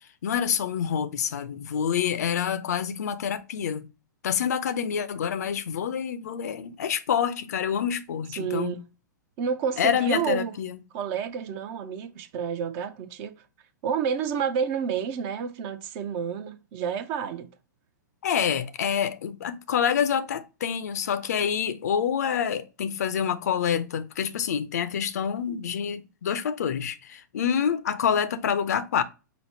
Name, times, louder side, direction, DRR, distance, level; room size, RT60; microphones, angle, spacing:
voice 1, 0.2-3.8 4.2-8.8 9.8-10.8 18.2-29.0, left 8 dB, 55° left, 0.5 m, -27 dB
voice 2, 8.3-8.8 9.4-10.5 10.9-13.4 13.8-17.5, right 7 dB, 35° right, 0.6 m, -29 dB
5.1 x 2.1 x 4.3 m
figure-of-eight pair, 105°, 10 cm